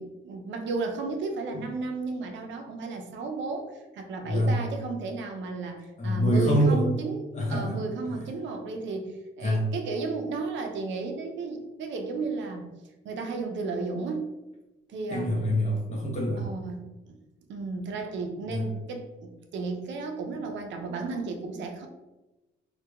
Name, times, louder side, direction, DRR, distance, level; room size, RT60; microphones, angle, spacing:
voice 1, 0.0-12.7 13.0-14.3 14.9-15.3 16.4-17.2 17.5-21.9, right 3 dB, 70° right, 4 dB, 0.4 m, -33 dB
voice 2, 4.2-4.6 6.0-6.9 7.3-7.8 8.1-8.2 9.4-9.6 15.1-16.5 18.5-18.6, equal, 35° left, -2 dB, 0.8 m, -25 dB
2.7 x 2.2 x 2.2 m, 1.0 s
cardioid pair, 90°, 20 cm